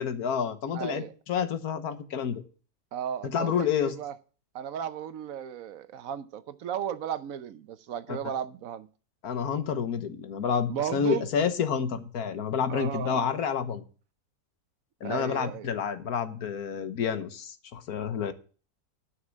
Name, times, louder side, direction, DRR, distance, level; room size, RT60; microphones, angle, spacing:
voice 1, 0.0-2.4 3.3-3.9 9.2-13.8 15.0-18.3, left 7 dB, 75° left, 1.5 m, -29 dB
voice 2, 0.7-1.1 2.9-4.1 4.5-8.9 10.7-11.3 12.7-13.3 15.0-15.7, right 9 dB, 65° right, 1.1 m, -35 dB
9.6 x 6.6 x 7.2 m
omnidirectional pair, 1.6 m